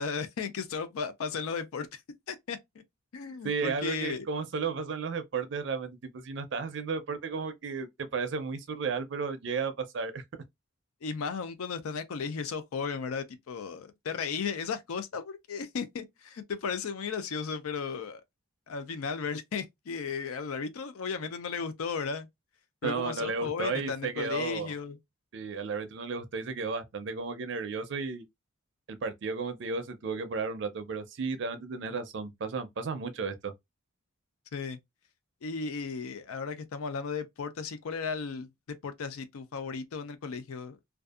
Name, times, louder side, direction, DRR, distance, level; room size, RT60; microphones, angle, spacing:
voice 1, 0.0-2.0 2.3-2.6 3.1-4.3 11.0-18.2 18.7-22.3 22.8-25.0 34.5-34.8 35.4-38.5 38.8-40.8, left 5 dB, 85° left, 0.4 m, -35 dB
voice 2, 3.4-10.2 22.8-24.7 25.3-28.2 28.9-33.5, right 4 dB, 55° right, 0.4 m, -33 dB
2.6 x 2.3 x 2.3 m
head